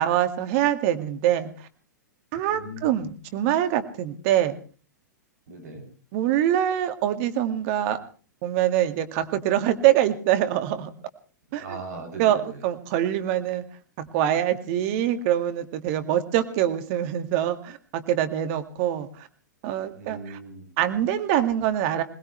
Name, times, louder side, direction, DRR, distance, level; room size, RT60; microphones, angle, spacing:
voice 1, 0.0-1.5 2.3-4.5 6.1-8.0 8.4-10.9 11.5-11.6 12.2-13.6 14.0-19.3 19.6-20.2 20.8-22.0, right 11 dB, 45° right, 9 dB, 2.1 m, -24 dB
voice 2, 2.5-3.0 5.5-5.8 11.5-12.7 19.9-20.7, right 2 dB, 65° right, 6 dB, 7.2 m, -39 dB
22.5 x 19.5 x 3.3 m, 0.38 s
hypercardioid pair, 110°, 10 cm